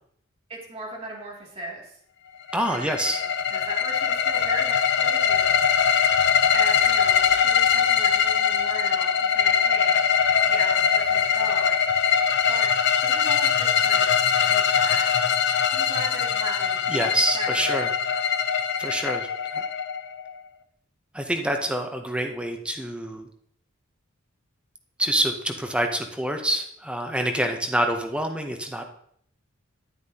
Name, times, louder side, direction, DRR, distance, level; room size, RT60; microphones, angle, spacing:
voice 1, 0.5-1.9 2.7-5.6 6.5-10.0 10.4-11.8 12.5-12.7 13.0-14.2 14.4-15.1 15.7-18.3 27.4-27.6, right 1 dB, 30° right, -3 dB, 2.5 m, -37 dB
sound 1, 2.5-20.3, left 7 dB, 55° left, 0.6 m, -22 dB
voice 2, 2.5-3.2 16.9-17.9 18.8-19.6 21.1-23.3 25.0-28.9, right 1 dB, 5° right, 4 dB, 0.6 m, -26 dB
9.5 x 9.5 x 2.8 m, 0.67 s
head